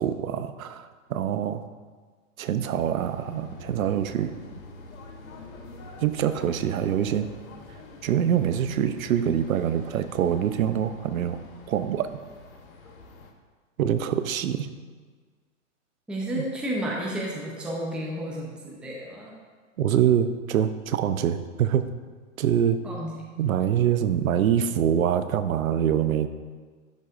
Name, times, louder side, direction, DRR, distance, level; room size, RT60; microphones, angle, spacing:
voice 1, 0.0-1.6 2.4-4.4 6.0-7.3 8.0-11.4 11.7-12.1 13.8-14.7 16.4-16.5 19.8-21.9 22.4-22.8 23.4-26.3, right 9 dB, 85° right, 11 dB, 0.6 m, -25 dB
sound 1, 3.0-13.3, left 3 dB, 85° left, 1.0 m, -46 dB
voice 2, 16.1-19.3 22.8-23.2, equal, ahead, -3 dB, 0.6 m, -32 dB
11.5 x 4.0 x 2.5 m, 1.5 s
hypercardioid pair, 130°, 40 cm